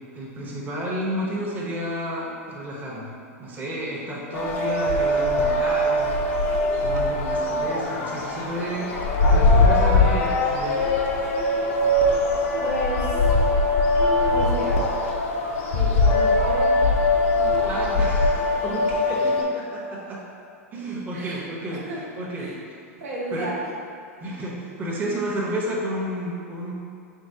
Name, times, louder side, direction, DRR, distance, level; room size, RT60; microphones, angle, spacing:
voice 1, 0.0-3.1 3.4-8.9 9.2-10.8 17.6-20.2 20.7-22.5 23.3-23.5 24.2-26.7, right 1 dB, 20° right, -5 dB, 0.8 m, -31 dB
sound 1, 4.3-19.4, left 2 dB, 55° left, 0.6 m, -21 dB
voice 2, 12.6-13.1 14.3-14.9 15.7-16.8 17.3-18.0 21.1-21.4 21.7-22.0 22.3-22.6 23.0-23.6, right 1 dB, 70° right, -5 dB, 0.9 m, -32 dB
4.7 x 3.1 x 2.7 m, 2.4 s
hypercardioid pair, 100°, 8 cm